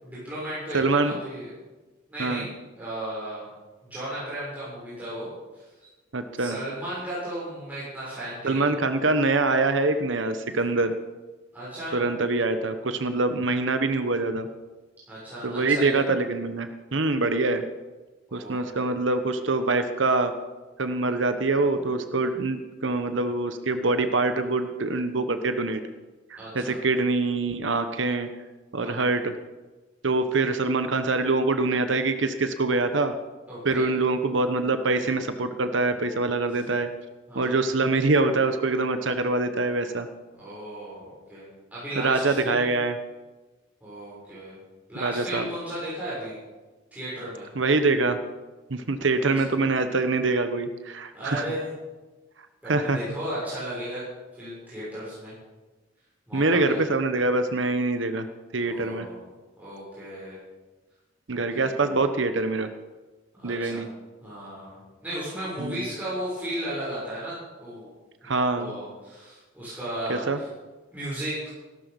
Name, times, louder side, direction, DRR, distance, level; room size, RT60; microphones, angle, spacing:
voice 1, 0.0-1.5 2.1-2.5 2.8-3.5 3.9-5.3 5.5-5.6 6.4-8.8 11.5-12.0 15.1-16.1 18.3-18.7 26.4-26.8 28.8-29.1 33.5-33.9 36.5-36.6 37.3-37.5 40.4-42.7 43.8-44.6 44.9-46.4 46.9-47.5 49.2-49.5 51.1-51.7 52.6-54.0 54.4-55.3 56.3-56.9 58.6-59.3 59.6-60.4 61.3-61.7 63.3-63.8 64.2-67.9 68.2-70.5 70.9-71.4, right 1 dB, 10° right, -10 dB, 6.7 m, -35 dB
voice 2, 0.7-1.1 2.2-2.5 6.1-6.6 8.4-10.9 11.9-14.5 15.4-17.6 18.3-20.3 20.8-25.8 26.3-28.3 28.7-29.3 30.0-33.1 33.6-36.9 37.3-40.1 42.0-43.0 45.0-45.5 47.5-48.2 48.7-51.4 52.7-53.0 56.3-58.3 58.5-59.1 61.3-62.7 63.4-63.9 65.6-65.8 68.2-68.7 70.1-70.4, right 3 dB, 70° right, 9 dB, 1.1 m, -24 dB
17.0 x 12.5 x 5.3 m, 1.2 s
head